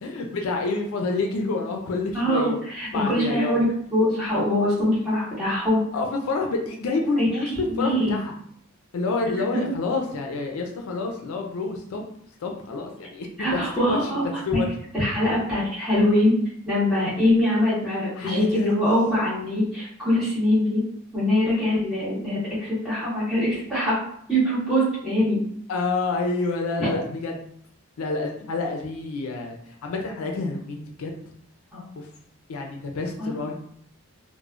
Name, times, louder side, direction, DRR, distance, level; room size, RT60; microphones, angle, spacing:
voice 1, 0.0-2.6 2.9-3.5 5.9-8.3 8.9-12.0 12.4-14.0 14.5-14.7 18.2-19.3 25.7-27.4 28.0-31.1 32.0-32.1 32.5-33.5, left 3 dB, 70° left, 2 dB, 0.4 m, -28 dB
voice 2, 2.1-5.8 7.2-8.2 9.7-9.8 13.4-14.3 14.5-14.6 14.9-16.3 16.6-20.8 21.1-23.9 24.3-25.4 26.8-26.9 31.7-31.8 33.2-33.3, left 1 dB, 5° right, -12 dB, 1.3 m, -23 dB
2.9 x 2.0 x 2.4 m, 0.66 s
head